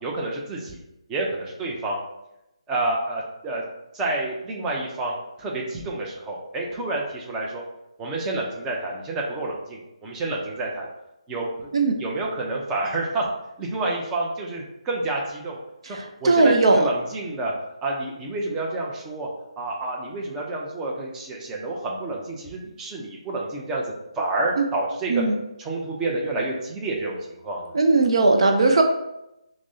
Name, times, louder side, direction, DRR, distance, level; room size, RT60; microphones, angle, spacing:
voice 1, 0.0-0.8 1.1-2.0 2.7-3.6 3.9-7.6 8.0-10.9 11.3-11.5 12.0-13.2 13.6-15.6 15.8-17.5 17.8-19.3 19.6-23.8 24.2-25.2 25.6-27.2 27.4-27.8, right 2 dB, 15° right, -2 dB, 0.6 m, -29 dB
voice 2, 15.8-16.9 24.6-24.7 25.1-25.4 27.7-28.8, right 3 dB, 60° right, 3 dB, 0.4 m, -19 dB
5.9 x 2.1 x 2.7 m, 0.87 s
figure-of-eight pair, 150°, 3 cm